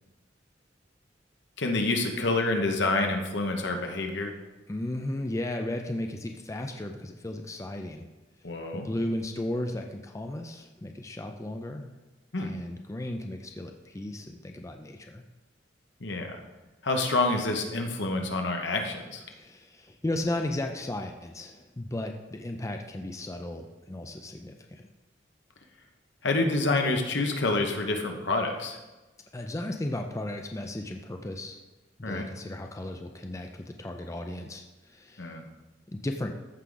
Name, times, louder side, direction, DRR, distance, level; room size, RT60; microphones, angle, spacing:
voice 1, 1.6-4.3 8.4-8.9 12.3-12.5 16.0-16.4 16.8-19.2 26.2-28.8 32.0-32.3 35.2-35.5, left 2 dB, 70° left, 3 dB, 1.1 m, -27 dB
voice 2, 4.7-8.1 8.7-12.0 12.4-15.2 19.3-24.9 29.3-31.6 32.0-35.3 35.9-36.3, left 1 dB, 15° left, 4 dB, 0.5 m, -35 dB
14.0 x 4.8 x 3.9 m, 1.1 s
head